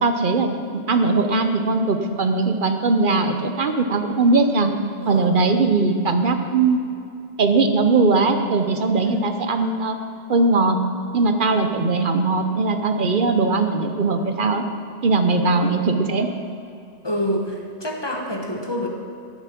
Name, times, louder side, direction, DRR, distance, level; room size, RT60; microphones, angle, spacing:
voice 1, 0.0-0.5 0.7-4.7 5.1-6.8 7.4-10.0 10.3-10.8 11.1-14.6 15.0-16.3, right 3 dB, 50° right, 6 dB, 0.9 m, -20 dB
voice 2, 5.0-5.3 9.0-9.3 15.4-15.8 17.0-18.9, equal, 20° left, 1 dB, 1.3 m, -27 dB
10.5 x 9.1 x 5.9 m, 2.7 s
omnidirectional pair, 1.2 m